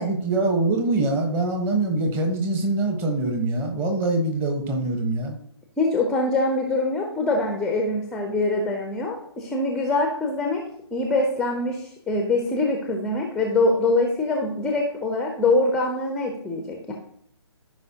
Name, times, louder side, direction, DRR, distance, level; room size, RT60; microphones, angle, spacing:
voice 1, 0.0-5.3, right 2 dB, 15° right, 4 dB, 1.2 m, -24 dB
voice 2, 5.8-10.6 10.9-16.9, left 2 dB, 5° left, 2 dB, 0.7 m, -24 dB
13.5 x 5.5 x 2.9 m, 0.67 s
figure-of-eight pair, 145°, 15 cm